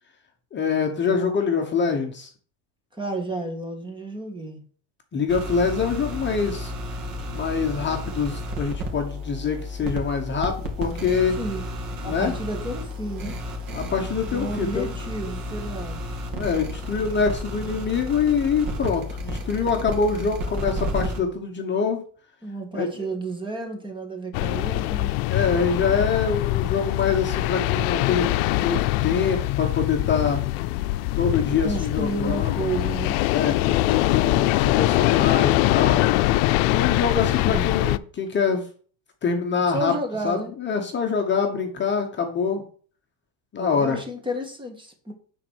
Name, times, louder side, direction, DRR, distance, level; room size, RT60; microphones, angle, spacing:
voice 1, 0.5-2.3 5.1-6.7 7.3-11.4 12.0-12.3 13.7-14.9 16.3-22.0 22.7-23.1 25.3-30.4 31.2-32.6 33.3-36.0 36.7-38.6 39.2-39.9 40.2-42.6 43.5-44.0, left 5 dB, 25° left, 3 dB, 1.2 m, -25 dB
voice 2, 2.9-4.6 11.4-11.6 12.0-13.3 14.3-16.0 22.4-25.1 31.6-33.2 37.5-37.8 39.7-40.5 43.6-45.1, right 2 dB, 10° right, 4 dB, 1.6 m, -31 dB
sound 1, 5.3-21.2, left 1 dB, 50° right, 2.3 m, -32 dB
sound 2, 24.3-38.0, left 17 dB, 85° left, 0.6 m, -23 dB
9.7 x 4.2 x 6.3 m, 0.43 s
cardioid pair, 145°, 43 cm